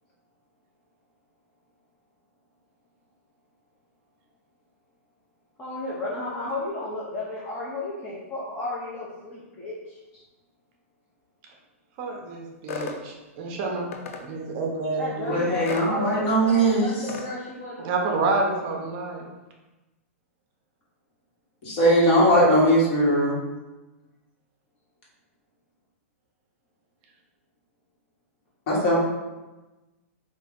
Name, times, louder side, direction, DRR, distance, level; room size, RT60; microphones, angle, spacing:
voice 1, 5.6-10.0 14.9-17.8, left 2 dB, 20° left, -7 dB, 0.6 m, -33 dB
voice 2, 12.0-13.9 14.2-15.4 17.8-19.2, right 3 dB, 40° right, 1 dB, 0.6 m, -28 dB
sound 1, 12.7-13.0 13.9-14.2 15.7-15.9 17.1-17.3, left 5 dB, 70° left, 0.5 m, -33 dB
voice 3, 15.2-17.1 21.6-23.4 28.7-29.0, right 1 dB, 45° left, -5 dB, 1.3 m, -20 dB
3.2 x 2.5 x 3.7 m, 1.1 s
hypercardioid pair, 150°, 8 cm